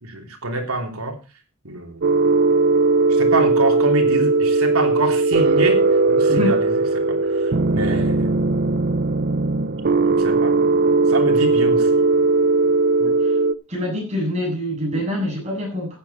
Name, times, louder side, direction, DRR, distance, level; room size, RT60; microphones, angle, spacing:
voice 1, 0.0-1.2 1.6-2.0 3.1-8.4 10.2-10.6 11.1-12.0, right 2 dB, 80° right, 3 dB, 3.2 m, -27 dB
sound 1, 2.0-13.5, right 3 dB, 50° right, 0.6 m, -18 dB
voice 2, 13.0-13.3 13.7-16.0, left 1 dB, 30° right, -1 dB, 7.6 m, -25 dB
14.5 x 9.6 x 4.2 m, 0.31 s
head